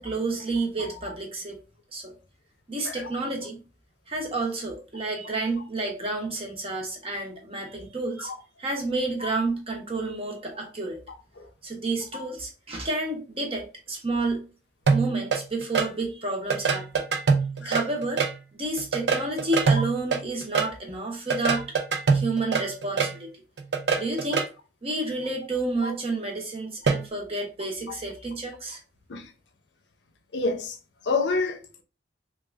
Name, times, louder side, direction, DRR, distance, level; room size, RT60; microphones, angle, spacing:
voice 1, 0.0-1.6 1.9-2.1 2.7-3.6 4.1-8.3 8.6-11.0 11.6-14.4 14.9-17.0 17.6-18.2 18.5-21.7 22.1-23.3 24.0-24.5 24.8-28.8, right 2 dB, 35° right, 0.9 m, -30 dB
sound 1, 14.9-15.9 16.5-18.4 18.8-20.7 21.3-23.2 23.6-24.5 26.9-27.0, right 5 dB, 70° right, 0.6 m, -24 dB
voice 2, 30.3-30.8 31.0-31.7, left 3 dB, 80° left, 0.6 m, -28 dB
3.4 x 2.4 x 3.3 m
head